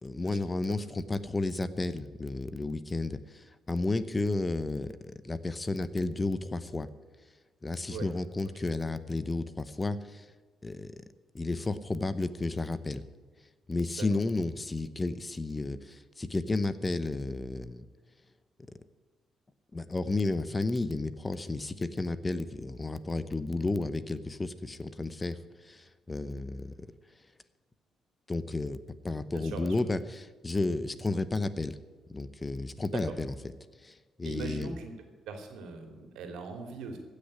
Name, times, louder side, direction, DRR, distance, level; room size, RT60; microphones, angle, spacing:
voice 1, 0.0-6.9 7.6-10.3 10.6-10.9 11.3-13.0 13.7-17.9 19.7-26.7 28.3-28.8 29.0-31.8 32.1-33.3 33.8-34.8, left 2 dB, 20° left, 13 dB, 0.8 m, -32 dB
voice 2, 29.3-29.8 32.9-33.2 34.2-34.9 35.3-37.0, right 4 dB, 85° right, 5 dB, 2.7 m, -40 dB
15.5 x 6.7 x 9.7 m, 1.4 s
cardioid pair, 90°, 0 cm